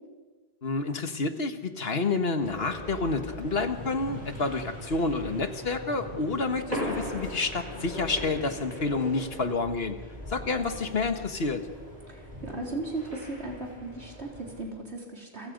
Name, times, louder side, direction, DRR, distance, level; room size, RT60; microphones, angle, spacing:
voice 1, 0.6-10.0 10.3-11.7, left 3 dB, 65° left, 7 dB, 1.7 m, -29 dB
sound 1, 2.4-14.6, left 1 dB, 40° right, 6.1 m, -39 dB
voice 2, 12.1-15.5, right 2 dB, 85° right, 0 dB, 4.4 m, -37 dB
29.0 x 24.0 x 5.3 m, 1.4 s
omnidirectional pair, 1.1 m